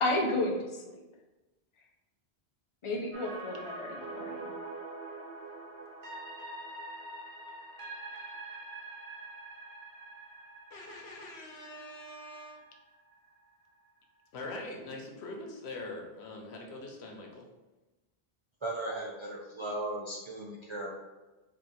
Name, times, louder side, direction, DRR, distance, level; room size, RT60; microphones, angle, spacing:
voice 1, 0.0-1.0 2.8-4.5, left 2 dB, 40° left, 1 dB, 0.5 m, -32 dB
sound 1, 3.1-13.1 13.5-13.6, right 2 dB, 85° right, 1.0 m, -44 dB
voice 2, 10.7-12.7 14.3-17.5, left 2 dB, 85° left, 1 dB, 1.0 m, -43 dB
voice 3, 18.6-20.9, right 2 dB, 50° right, -3 dB, 0.3 m, -37 dB
3.6 x 2.4 x 4.0 m, 1.1 s
omnidirectional pair, 1.1 m